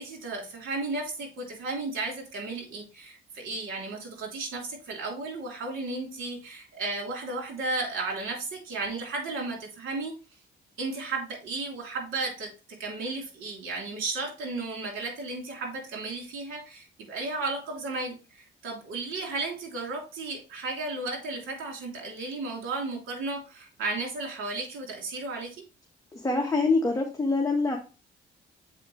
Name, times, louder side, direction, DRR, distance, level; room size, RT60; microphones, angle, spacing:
voice 1, 0.0-10.1 10.8-12.5 12.8-25.5, right 3 dB, 85° right, 0 dB, 3.0 m, -34 dB
voice 2, 26.1-27.8, left 3 dB, 15° left, 0 dB, 1.2 m, -25 dB
7.4 x 4.7 x 3.1 m, 0.32 s
cardioid pair, 90°, 20 cm